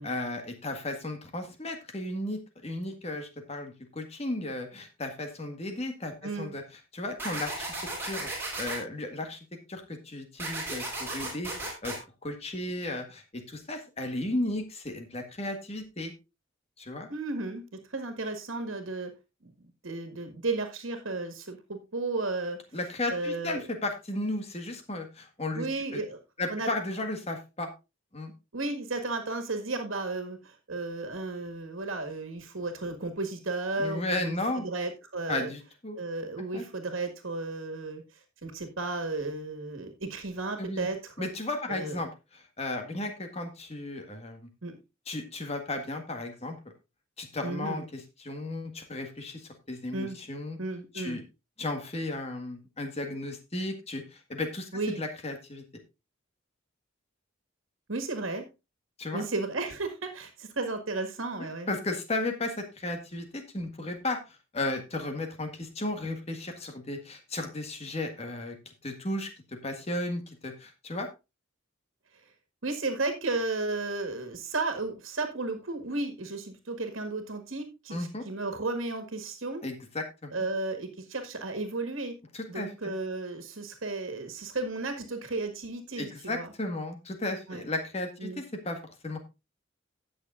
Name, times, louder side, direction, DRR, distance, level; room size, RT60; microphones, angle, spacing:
voice 1, 0.0-6.6 6.9-7.7 8.0-8.3 8.6-9.4 9.7-11.9 12.2-16.1 16.8-17.1 22.7-25.6 25.9-26.0 26.4-27.7 28.1-28.3 33.8-34.6 35.3-36.0 36.5-36.6 40.6-40.9 41.2-44.5 45.1-46.6 47.2-50.6 50.9-51.2 51.6-54.7 55.0-55.6 59.0-59.2 61.4-68.5 68.8-71.1 77.9-78.2 79.6-80.3 82.3-82.9 86.0-89.2, left 2 dB, 30° left, 5 dB, 1.7 m, -34 dB
sound 1, 7.2-8.8 10.4-12.0, right 2 dB, 10° right, 3.8 m, -35 dB
voice 2, 17.1-19.1 19.4-19.5 19.8-22.6 23.1-23.6 25.5-26.2 26.5-26.7 28.5-35.5 36.0-38.0 38.4-41.3 41.7-42.0 44.6-44.8 47.4-47.8 49.9-50.2 50.6-51.2 54.7-55.0 57.9-58.5 59.1-61.7 72.6-79.6 80.3-82.2 82.5-86.5 87.5-87.6 88.2-88.4, right 3 dB, 75° right, 6 dB, 1.8 m, -34 dB
18.0 x 6.6 x 2.5 m, 0.26 s
head